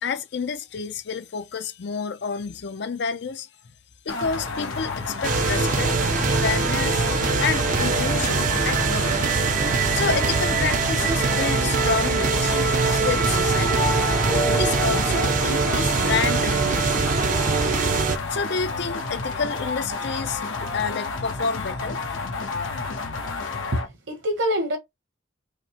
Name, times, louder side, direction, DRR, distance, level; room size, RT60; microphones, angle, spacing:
voice 1, 0.0-3.5 4.1-6.0 6.3-9.4 9.9-13.9 14.6-17.1 18.3-22.0, left 5 dB, 60° left, 0.5 m, -29 dB
sound 1, 4.1-23.9, left 3 dB, 85° left, 0.9 m, -31 dB
sound 2, 5.2-18.2, right 4 dB, 40° right, 0.5 m, -22 dB
sound 3, 13.7-16.7, left 1 dB, 15° left, 0.6 m, -31 dB
voice 2, 23.7-24.8, equal, 70° right, 1.2 m, -25 dB
4.9 x 2.1 x 2.9 m
head